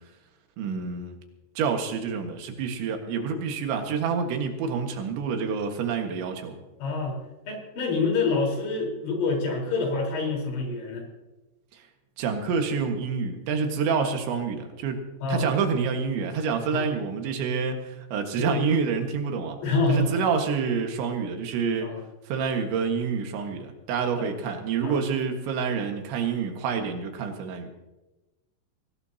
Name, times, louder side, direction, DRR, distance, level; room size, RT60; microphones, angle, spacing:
voice 1, 0.6-1.2 1.6-6.6 11.7-11.8 12.2-15.0 15.3-19.6 19.9-22.0 22.3-27.7, right 5 dB, 85° right, 4 dB, 4.0 m, -28 dB
voice 2, 6.8-7.2 7.5-11.0 15.2-15.5 16.7-16.9 18.4-18.6 19.6-20.1 21.8-22.0 24.1-24.3 24.8-25.0, left 3 dB, 90° left, 0 dB, 6.6 m, -27 dB
22.5 x 18.5 x 2.9 m, 1.1 s
omnidirectional pair, 5.1 m